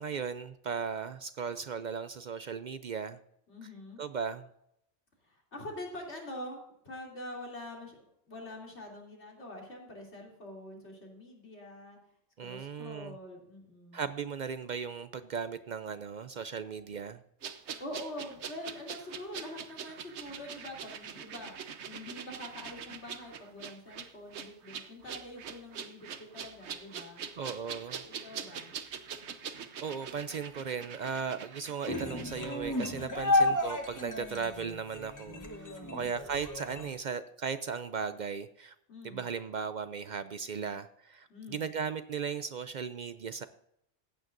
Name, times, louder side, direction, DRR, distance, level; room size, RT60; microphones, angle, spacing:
voice 1, 0.0-3.2 4.0-4.5 12.4-13.2 13.9-17.2 27.4-28.0 29.8-38.7 39.0-43.5, right 6 dB, 55° right, 12 dB, 0.5 m, -37 dB
voice 2, 3.5-4.0 5.2-8.0 8.3-12.0 12.4-14.1 17.8-21.6 21.8-27.2 28.0-28.7 35.8-36.2 38.9-39.2 41.3-41.7, left 1 dB, 75° left, -1 dB, 3.2 m, -45 dB
sound 1, 17.4-32.9 33.2-33.3, right 7 dB, 75° right, 1.1 m, -43 dB
sound 2, 31.9-36.9, left 2 dB, 15° left, 1.1 m, -32 dB
15.0 x 9.2 x 2.6 m, 0.76 s
omnidirectional pair, 1.2 m